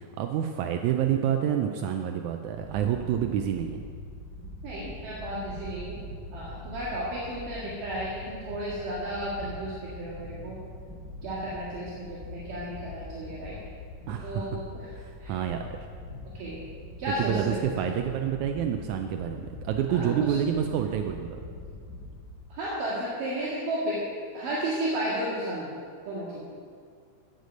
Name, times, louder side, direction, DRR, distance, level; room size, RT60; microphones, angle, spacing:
voice 1, 0.0-3.8 14.1-14.5 15.0-15.8 17.2-21.4, right 9 dB, 85° right, 5 dB, 1.7 m, -28 dB
sound 1, 2.5-22.4, left 2 dB, 35° right, 4.1 m, -43 dB
voice 2, 4.6-6.0 6.3-10.6 11.2-13.6 14.2-14.9 15.2-15.4 16.3-16.6 17.0-17.7 19.9-20.4 22.5-24.0 24.3-25.7 26.1-26.5, right 1 dB, 70° right, -9 dB, 3.7 m, -33 dB
14.5 x 8.1 x 5.2 m, 2.2 s
omnidirectional pair, 4.0 m